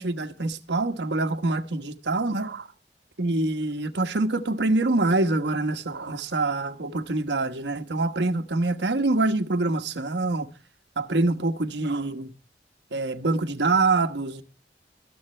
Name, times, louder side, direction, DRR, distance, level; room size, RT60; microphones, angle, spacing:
voice 1, 0.0-2.7 3.2-10.5 11.0-12.3 12.9-14.4, right 2 dB, 90° right, 1.3 m, -25 dB
24.0 x 8.1 x 3.3 m
head